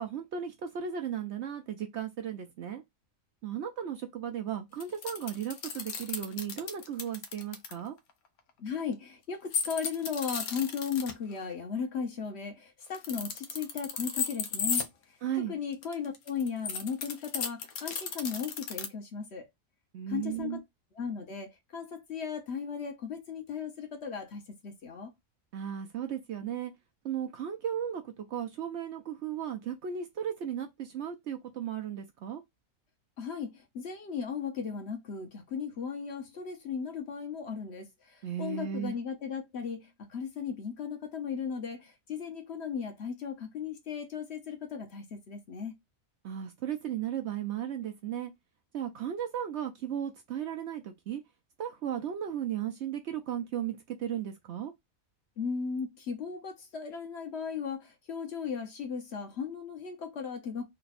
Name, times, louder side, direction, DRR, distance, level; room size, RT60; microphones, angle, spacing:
voice 1, 0.0-2.8 3.4-8.0 15.2-15.6 19.9-20.6 25.5-26.7 27.0-32.4 38.2-39.0 46.2-48.3 48.7-51.2 51.6-54.7, right 9 dB, 65° right, 0.8 m, -35 dB
sound 1, 4.8-7.7 9.5-11.1 12.9-14.9 15.7-18.9, left 6 dB, 90° left, 1.2 m, -34 dB
voice 2, 8.6-14.9 15.5-19.5 20.1-20.6 21.0-25.1 33.2-45.7 55.4-60.7, left 6 dB, 55° left, 1.0 m, -36 dB
3.3 x 2.3 x 4.0 m
omnidirectional pair, 1.5 m